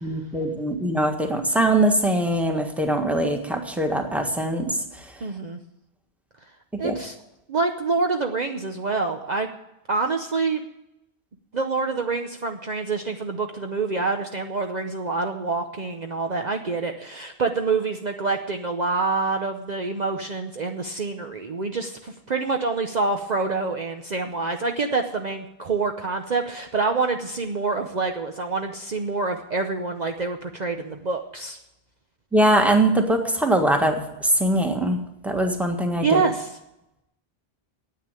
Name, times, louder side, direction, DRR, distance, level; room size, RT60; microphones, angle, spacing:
voice 1, 0.0-4.8 6.8-6.9 32.3-36.2, right 1 dB, ahead, 4 dB, 1.5 m, -22 dB
voice 2, 5.2-5.6 6.8-7.1 7.5-9.5 9.9-10.6 11.5-31.6 36.0-36.6, right 4 dB, 45° right, 4 dB, 0.9 m, -26 dB
9.8 x 8.9 x 8.9 m, 0.88 s
omnidirectional pair, 1.1 m